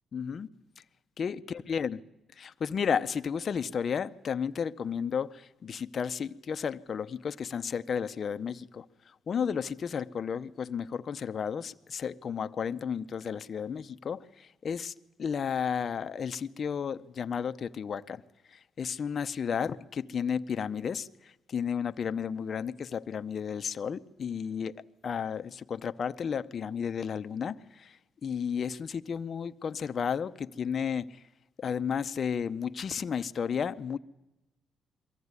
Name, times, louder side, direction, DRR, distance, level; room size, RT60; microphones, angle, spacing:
voice 1, 0.1-0.5 1.2-2.0 2.4-8.8 9.3-14.9 15.2-18.2 18.5-24.8 25.0-28.0 28.2-31.2 31.6-34.0, left 7 dB, 50° left, 0.8 m, -33 dB
23.0 x 15.0 x 9.6 m
cardioid pair, 90°, 0 cm